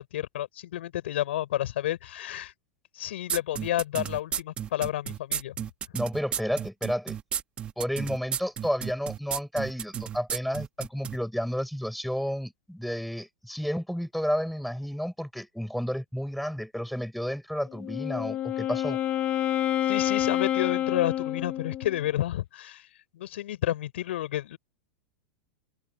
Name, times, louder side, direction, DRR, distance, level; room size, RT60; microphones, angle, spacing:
voice 1, 0.0-2.5 3.0-5.5 19.9-22.9 23.1-24.6, left 13 dB, 85° left, 5.6 m, -30 dB
sound 1, 3.3-11.2, right 9 dB, 20° right, 1.0 m, -32 dB
voice 2, 5.9-7.2 7.8-19.0, equal, ahead, 5.8 m, -31 dB
Wind instrument woodwind instrument, 17.7-22.0, left 12 dB, 20° left, 0.8 m, -28 dB
supercardioid pair, 170°, 6 cm